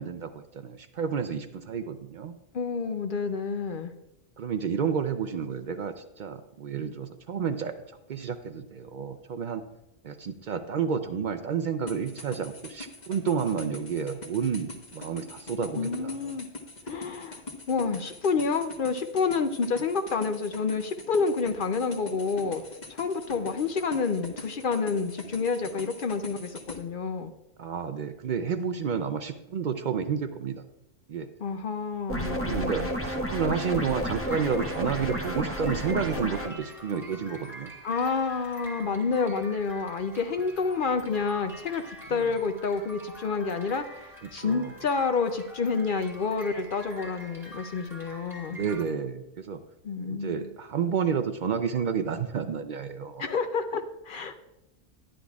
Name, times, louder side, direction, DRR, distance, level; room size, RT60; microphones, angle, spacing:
voice 1, 0.0-2.3 4.4-7.7 8.1-9.6 10.0-16.3 27.6-30.6 31.1-31.3 32.5-37.7 42.1-42.2 44.3-44.7 48.5-49.6 50.1-53.2, right 6 dB, 65° right, 8 dB, 0.5 m, -30 dB
voice 2, 2.5-3.9 15.7-16.5 16.9-22.6 22.9-27.3 31.4-32.9 37.8-48.6 49.8-50.5 53.2-54.4, left 5 dB, 60° left, 7 dB, 0.6 m, -29 dB
sound 1, 11.9-26.8, left 2 dB, 35° left, 1.1 m, -43 dB
sound 2, 32.1-36.5, equal, 15° left, 0.7 m, -31 dB
sound 3, 33.6-48.9, right 1 dB, ahead, 1.5 m, -45 dB
11.0 x 10.0 x 2.3 m, 0.89 s
omnidirectional pair, 1.3 m